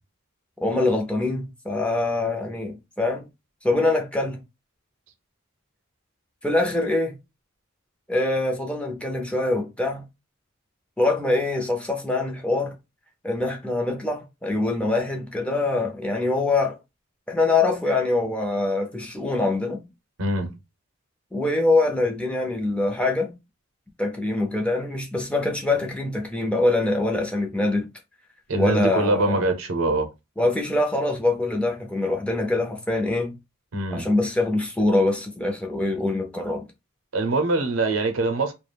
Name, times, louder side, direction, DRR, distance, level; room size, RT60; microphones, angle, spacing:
voice 1, 0.6-3.3 3.6-4.4 6.4-7.2 8.1-10.0 11.0-12.7 13.2-16.8 17.3-19.8 21.3-23.3 24.0-27.9 28.6-29.5 30.4-33.4 33.9-36.7, left 2 dB, 5° left, 0.4 m, -24 dB
voice 2, 20.2-20.6 28.5-30.1 33.7-34.1 37.1-38.5, right 2 dB, 80° right, 0.6 m, -23 dB
2.3 x 2.0 x 3.2 m
head